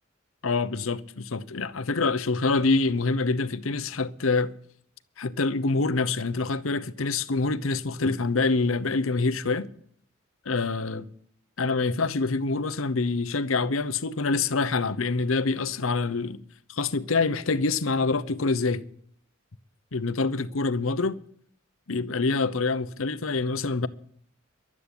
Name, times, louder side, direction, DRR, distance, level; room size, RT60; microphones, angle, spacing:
voice 1, 0.4-4.5 5.2-9.7 10.5-11.1 11.6-16.4 16.7-18.8 19.9-21.2 21.9-23.9, left 3 dB, 80° left, 0.8 m, -26 dB
12.0 x 8.5 x 9.8 m
head